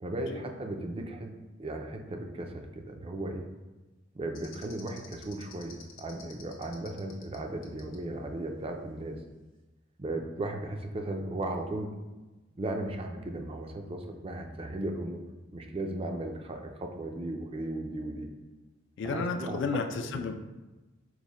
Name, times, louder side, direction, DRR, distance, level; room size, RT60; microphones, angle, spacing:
voice 1, 0.0-1.3 1.6-3.5 4.1-9.2 10.0-11.9 12.6-15.2 15.5-18.3 19.0-19.8 20.1-20.3, right 1 dB, 30° right, 4 dB, 0.4 m, -36 dB
sound 1, 4.3-7.4 7.6-8.0, left 7 dB, 85° left, 0.8 m, -49 dB
voice 2, 19.0-20.4, left 4 dB, 65° left, 6 dB, 0.4 m, -32 dB
4.6 x 2.1 x 4.1 m, 1.1 s
head